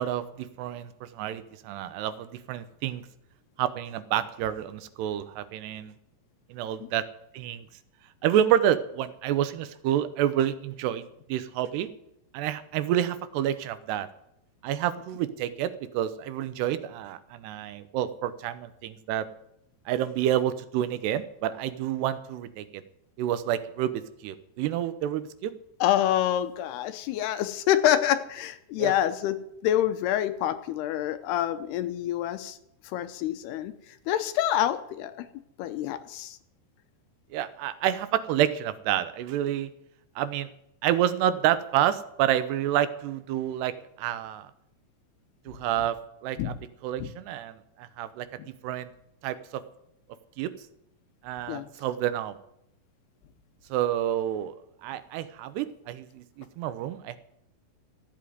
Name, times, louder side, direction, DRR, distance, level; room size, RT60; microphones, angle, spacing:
voice 1, 0.0-3.0 3.6-5.9 6.5-7.0 7.3-7.7 8.2-11.9 12.3-14.1 14.6-19.3 19.9-22.6 23.2-25.5 28.8-28.9 37.3-39.7 40.2-40.5 40.8-43.7 44.0-44.5 45.5-46.0 46.2-46.5 46.8-48.3 48.6-48.9 49.2-49.6 50.4-50.5 51.2-52.3 53.7-54.6 54.8-57.2, right 11 dB, 80° right, 13 dB, 2.8 m, -28 dB
voice 2, 25.8-32.6 32.9-33.7 34.1-35.3 35.6-36.4 46.4-46.6 47.0-47.1 48.4-48.5 51.5-51.7, left 11 dB, 80° left, 11 dB, 2.7 m, -27 dB
14.0 x 8.6 x 9.3 m, 0.77 s
omnidirectional pair, 4.9 m